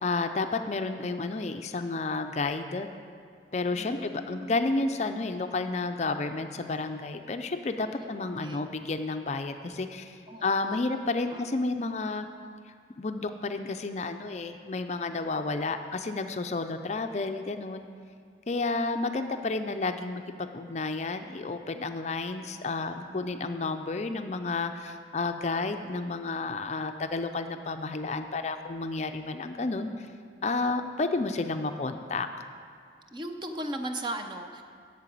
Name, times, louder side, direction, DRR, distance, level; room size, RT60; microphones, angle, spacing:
voice 1, 0.0-2.9 3.5-12.3 13.0-17.9 18.5-30.1 30.4-32.3, left 3 dB, 40° left, 7 dB, 0.4 m, -31 dB
voice 2, 3.7-4.6 7.9-8.1 8.4-8.7 10.3-10.8 11.3-11.5 23.1-23.4 33.1-34.6, right 1 dB, 25° right, 5 dB, 0.6 m, -38 dB
8.8 x 6.7 x 8.4 m, 2.2 s
head